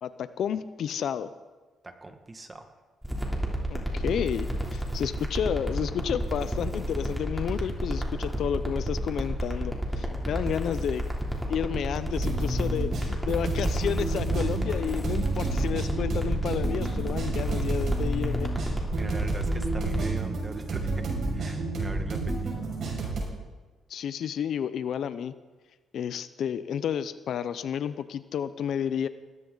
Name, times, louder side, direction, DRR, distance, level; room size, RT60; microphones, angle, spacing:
voice 1, 0.0-1.3 3.7-11.0 11.5-18.5 23.9-25.3 25.9-29.1, left 8 dB, 65° left, 13 dB, 0.7 m, -31 dB
voice 2, 1.8-2.7 18.9-21.0 21.3-22.5, right 2 dB, 25° right, 6 dB, 1.9 m, -41 dB
sound 1, 3.0-20.0, equal, 5° right, 3.2 m, -31 dB
sound 2, 12.1-23.2, right 2 dB, 60° right, 6.2 m, -30 dB
19.0 x 15.0 x 4.0 m, 1.3 s
cardioid pair, 90°, 0 cm